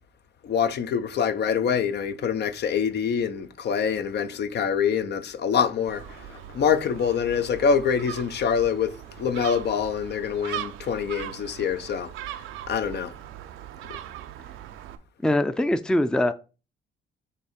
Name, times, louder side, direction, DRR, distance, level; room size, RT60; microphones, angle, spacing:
voice 1, 0.4-12.1 12.7-13.1, left 7 dB, 60° left, 0.7 m, -25 dB
Gull seagull, 5.9-15.0, right 12 dB, 90° right, 0.6 m, -40 dB
voice 2, 15.2-16.3, left 1 dB, 5° left, 0.5 m, -22 dB
6.8 x 2.8 x 5.1 m
cardioid pair, 90°, 20 cm